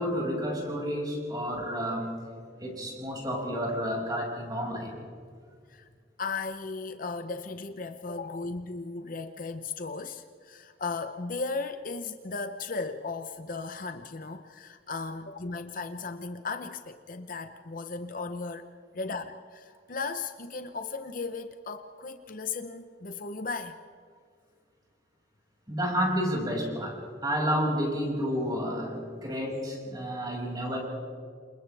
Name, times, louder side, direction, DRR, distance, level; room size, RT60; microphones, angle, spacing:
voice 1, 0.0-2.1 2.6-5.0 25.7-30.8, equal, 20° right, -2 dB, 6.1 m, -30 dB
voice 2, 6.2-23.8, left 4 dB, 45° left, 8 dB, 0.8 m, -36 dB
29.5 x 27.5 x 3.5 m, 2.1 s
head